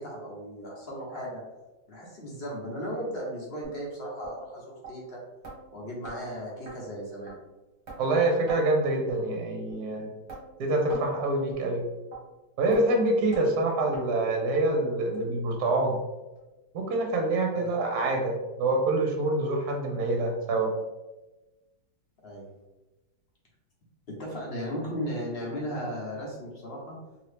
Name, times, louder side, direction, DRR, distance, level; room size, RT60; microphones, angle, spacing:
voice 1, 0.0-1.4 1.9-5.2 5.7-7.3 17.5-17.7 22.2-22.5 24.2-27.0, equal, 50° left, -4 dB, 0.7 m, -36 dB
sound 1, 3.6-3.8 4.2-4.4 4.8-4.9 5.4-5.6 6.0-6.2 6.7-6.8 7.3-7.4 7.9-8.0 8.5-8.6 9.1-9.2 9.7-9.8 10.3-10.4 10.9-11.1 11.5-11.6 12.1-12.2 12.7-12.8 13.3-13.5 13.9-14.0 14.5-14.6 15.1-15.2 15.8-15.9 16.4-16.5, right 3 dB, 45° right, 1.1 m, -42 dB
voice 2, 8.0-10.1 10.6-11.8 12.6-16.0 16.7-20.7, right 2 dB, 65° right, 2 dB, 1.1 m, -26 dB
2.9 x 2.7 x 3.2 m, 1.1 s
omnidirectional pair, 1.9 m